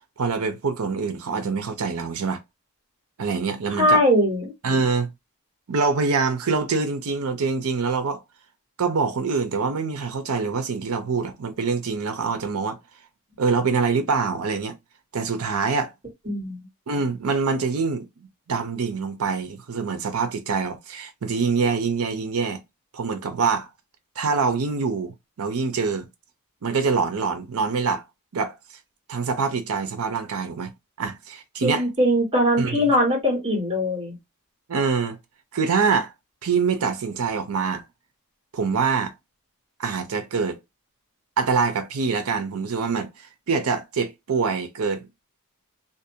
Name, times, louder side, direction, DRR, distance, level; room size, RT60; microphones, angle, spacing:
voice 1, 0.2-2.4 3.2-4.0 4.6-5.1 5.7-8.2 8.8-12.8 13.4-14.7 15.1-15.9 16.9-18.0 18.5-22.6 22.9-23.7 24.2-26.1 26.6-28.0 28.3-28.6 29.1-30.7 31.0-31.8 32.6-32.8 34.7-35.2 35.5-36.1 36.4-37.8 38.5-39.1 39.8-40.6 41.4-43.1 43.5-45.1, right 5 dB, 70° right, 0.6 m, -25 dB
voice 2, 3.8-4.5 16.2-16.7 31.6-34.2, equal, 25° right, 1.4 m, -21 dB
2.6 x 2.1 x 2.6 m
head